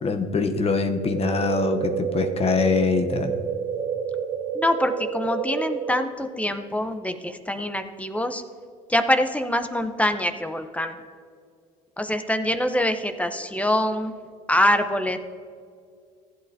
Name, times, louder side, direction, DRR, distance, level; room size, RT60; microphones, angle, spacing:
voice 1, 0.0-3.4, left 4 dB, 35° left, 7 dB, 0.8 m, -23 dB
sound 1, 1.0-6.0, right 7 dB, 60° right, 0.8 m, -29 dB
voice 2, 4.5-8.4 8.9-11.0 12.0-14.1 14.5-15.2, left 1 dB, 10° left, 8 dB, 0.7 m, -24 dB
15.5 x 8.3 x 2.7 m, 2.3 s
supercardioid pair, 85°, 17 cm